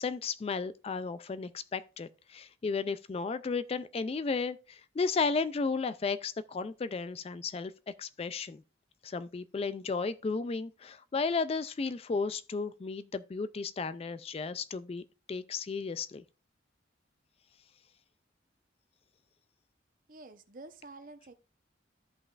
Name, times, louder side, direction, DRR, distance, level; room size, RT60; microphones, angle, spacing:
voice 1, 0.0-7.7 8.0-8.6 9.0-15.0 15.3-16.2, left 4 dB, 30° left, 0.3 m, -34 dB
voice 2, 20.1-21.3, right 2 dB, 45° right, 0.8 m, -49 dB
14.0 x 5.4 x 2.4 m
head